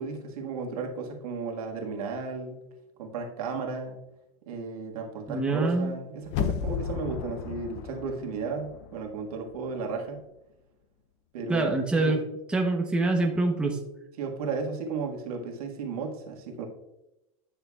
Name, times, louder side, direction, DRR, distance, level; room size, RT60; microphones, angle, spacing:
voice 1, 0.0-2.6 3.0-4.0 4.5-10.2 11.3-12.2 14.2-16.7, right 4 dB, 75° right, 2 dB, 1.7 m, -34 dB
voice 2, 5.3-5.9 11.5-12.2 12.5-13.8, right 2 dB, 5° right, 2 dB, 0.8 m, -25 dB
sound 1, 6.3-9.2 9.5-9.6, left 8 dB, 50° left, 0.5 m, -33 dB
10.5 x 6.6 x 2.3 m, 0.95 s
supercardioid pair, 140°, 19 cm